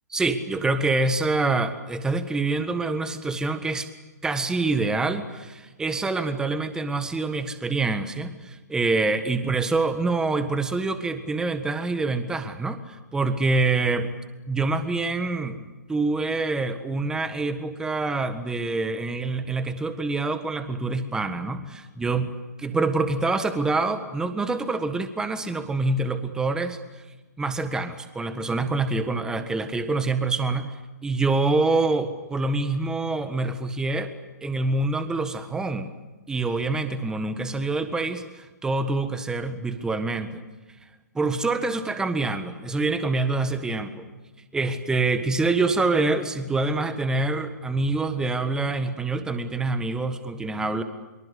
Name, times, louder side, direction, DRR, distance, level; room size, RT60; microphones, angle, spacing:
voice 1, 0.1-3.9 4.2-14.1 14.5-15.6 15.9-22.3 22.6-26.8 27.4-30.7 31.0-34.1 34.4-35.9 36.3-40.4 41.1-44.0 44.5-50.8, right 3 dB, 5° right, 10 dB, 1.5 m, -26 dB
25.0 x 24.0 x 8.3 m, 1.2 s
figure-of-eight pair, 130°, 9 cm